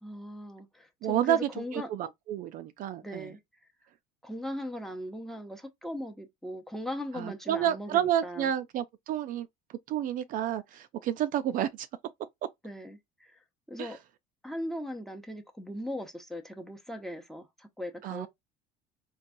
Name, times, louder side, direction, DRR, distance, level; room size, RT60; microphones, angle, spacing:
voice 1, 0.0-1.9 3.0-3.4 4.2-8.5 12.6-13.4 13.7-14.0 14.4-18.3, left 1 dB, ahead, 0.8 m, -39 dB
voice 2, 1.0-3.3 7.2-9.5 9.9-11.7 13.8-13.9 18.0-18.3, right 11 dB, 50° right, 0.4 m, -30 dB
3.9 x 2.3 x 2.6 m
cardioid pair, 120°, 18 cm